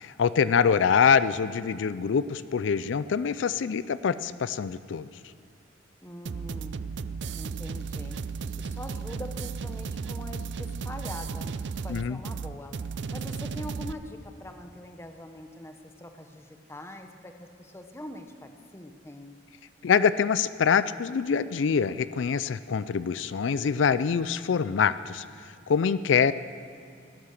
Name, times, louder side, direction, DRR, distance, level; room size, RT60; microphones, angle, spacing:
voice 1, 0.0-5.1 11.9-12.2 19.8-25.2 25.7-26.3, left 6 dB, 85° left, 15 dB, 0.4 m, -24 dB
voice 2, 6.0-6.8 7.3-8.2 8.6-12.7 13.1-19.4, left 1 dB, 15° left, 5 dB, 1.0 m, -43 dB
sound 1, 6.3-13.9, right 5 dB, 65° right, 0.4 m, -34 dB
17.0 x 12.0 x 6.6 m, 2.4 s
head